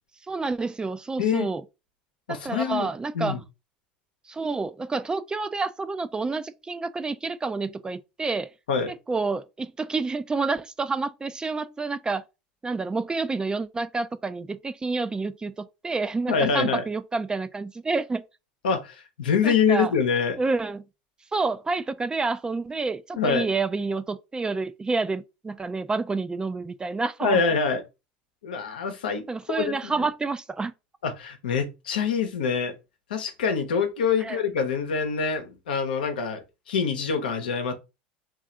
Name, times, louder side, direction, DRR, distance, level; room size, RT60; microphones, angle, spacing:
voice 1, 0.3-1.6 2.3-3.4 4.3-8.5 8.9-12.2 12.6-18.2 19.4-19.9 20.4-20.8 21.3-27.4 29.3-30.7 34.2-34.4, right 3 dB, 15° right, 0.4 m, -29 dB
voice 2, 1.2-1.5 2.3-2.9 3.1-3.4 8.7-8.9 16.3-16.8 18.6-20.4 23.2-23.5 27.2-27.8 28.4-29.2 29.5-29.9 31.0-32.7 33.1-37.7, left 6 dB, 85° left, 0.8 m, -25 dB
3.2 x 2.5 x 3.7 m
hypercardioid pair, 85°, 5 cm